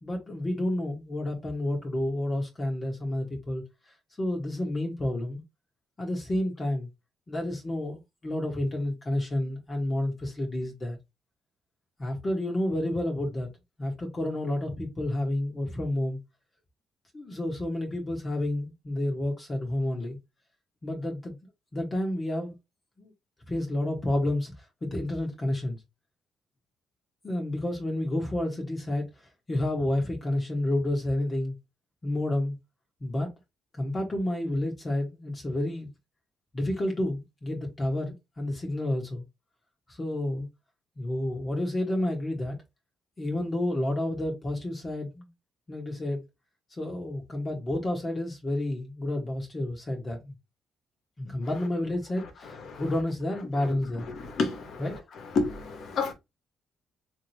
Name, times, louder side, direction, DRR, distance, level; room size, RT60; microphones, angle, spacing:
voice 1, 0.0-3.6 4.2-5.4 6.0-6.9 7.3-11.0 12.0-13.5 13.8-16.2 17.1-20.2 20.8-21.3 21.7-22.5 23.0-23.1 23.5-24.5 24.8-25.8 27.2-29.0 29.5-31.5 32.0-32.5 33.0-33.3 33.8-35.9 36.5-39.2 40.0-40.5 41.0-42.5 43.2-45.3 45.7-46.2 46.8-50.3 51.2-54.1 54.8-55.0, left 1 dB, 30° left, 1.3 m, -30 dB
voice 2, 54.1-54.9 55.3-56.1, left 4 dB, 65° left, 1.2 m, -29 dB
3.6 x 2.8 x 3.2 m
cardioid pair, 90°, 0 cm